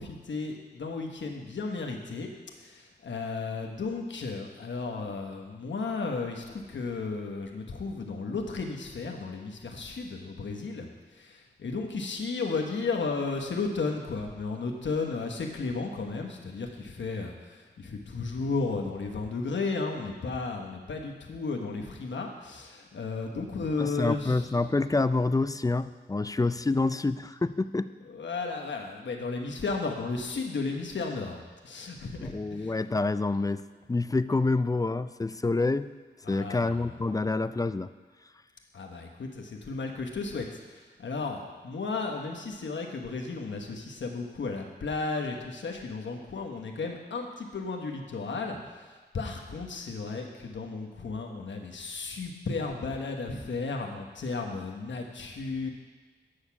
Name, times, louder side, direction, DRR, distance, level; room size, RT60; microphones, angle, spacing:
voice 1, 0.0-2.3 2.6-24.5 28.1-32.8 36.2-36.8 38.7-55.7, left 4 dB, 85° left, 2 dB, 1.1 m, -34 dB
voice 2, 23.8-27.9 32.2-33.6 33.9-35.9 36.3-37.9, left 3 dB, 20° left, 13 dB, 0.4 m, -27 dB
8.8 x 6.5 x 5.9 m, 1.4 s
cardioid pair, 55°, 19 cm